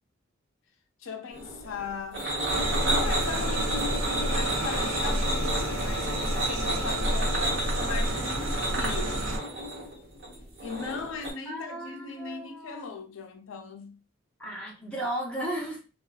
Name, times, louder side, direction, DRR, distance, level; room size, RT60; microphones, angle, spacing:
voice 1, 1.0-2.3 2.8-9.3 10.6-14.0, left 5 dB, 80° left, 0.4 m, -38 dB
sound 1, 1.3-11.3, right 1 dB, 55° right, 1.0 m, -31 dB
sound 2, 2.5-9.4, right 1 dB, 80° right, 0.6 m, -30 dB
voice 2, 11.5-12.9 14.4-15.8, right 1 dB, 5° left, 0.6 m, -35 dB
2.4 x 2.2 x 2.3 m
head